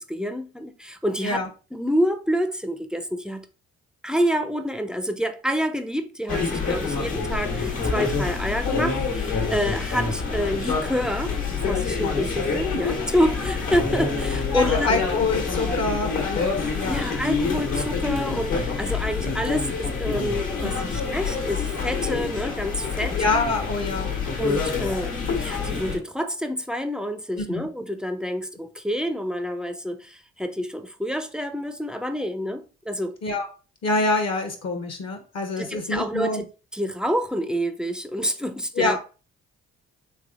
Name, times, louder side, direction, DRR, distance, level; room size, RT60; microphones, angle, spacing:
voice 1, 0.0-1.4 1.7-3.5 4.0-11.3 11.7-14.9 16.8-23.2 24.4-33.1 35.5-36.4 36.7-39.0, equal, 5° right, 0.4 m, -28 dB
sound 1, 6.3-26.0, left 5 dB, 70° left, 1.2 m, -27 dB
voice 2, 14.5-17.0 20.6-21.0 23.2-24.1 27.4-27.7 33.2-33.5 33.8-36.4 38.8-39.0, left 3 dB, 55° left, 0.8 m, -26 dB
3.4 x 3.1 x 2.4 m
supercardioid pair, 55°, 32 cm